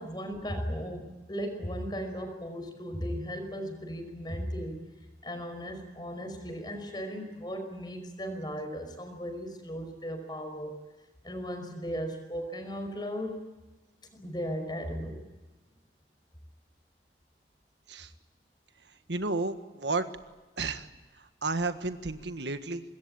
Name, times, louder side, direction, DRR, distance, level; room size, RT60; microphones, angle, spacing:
voice 1, 0.0-4.8 5.2-10.7 11.2-13.4 14.2-15.2, equal, 25° left, 7 dB, 5.2 m, -36 dB
voice 2, 19.1-20.1 20.6-20.9 21.4-22.8, right 3 dB, 85° right, 9 dB, 1.7 m, -32 dB
25.5 x 21.5 x 8.8 m, 1.2 s
head